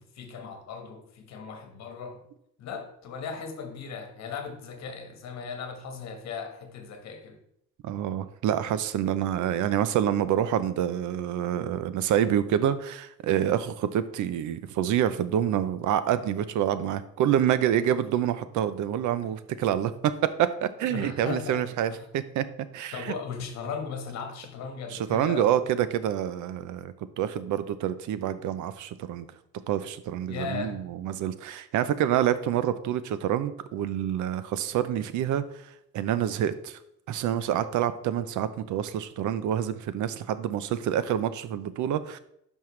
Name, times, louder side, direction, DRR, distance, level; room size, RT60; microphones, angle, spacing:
voice 1, 0.0-2.2 2.6-7.4 19.2-19.4 20.9-22.1 22.9-25.6 30.3-30.9, left 5 dB, 65° left, 1.5 m, -37 dB
voice 2, 7.8-20.1 20.4-22.5 22.7-23.1 24.9-29.3 29.7-35.4 35.9-36.8 37.1-42.2, right 10 dB, 80° right, 0.7 m, -27 dB
10.5 x 5.5 x 3.2 m
cardioid pair, 170°, 29 cm